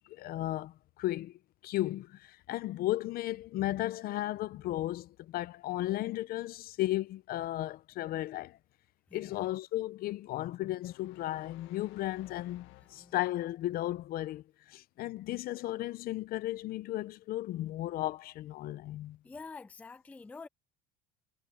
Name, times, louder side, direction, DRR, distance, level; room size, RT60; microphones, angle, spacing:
voice 1, 0.1-8.6 9.1-19.2, left 15 dB, 45° left, 0.6 m, -35 dB
voice 2, 9.1-9.5 12.9-13.1 19.2-20.5, left 4 dB, 5° left, 0.4 m, -48 dB
sound 1, 10.8-13.6, left 18 dB, 65° left, 1.7 m, -57 dB
cardioid pair, 145°, 21 cm